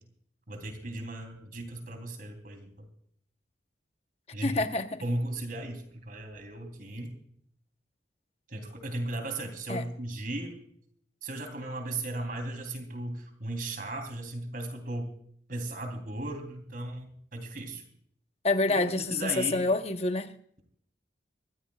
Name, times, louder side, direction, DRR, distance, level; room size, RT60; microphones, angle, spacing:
voice 1, 0.5-2.9 4.3-4.6 5.0-7.1 8.5-10.6 11.2-15.1 15.5-17.8 18.7-19.7, right 1 dB, 50° right, 3.3 m, -36 dB
voice 2, 4.4-5.0 9.7-9.9 18.4-20.3, left 2 dB, 35° left, 0.9 m, -27 dB
24.5 x 14.5 x 2.4 m
head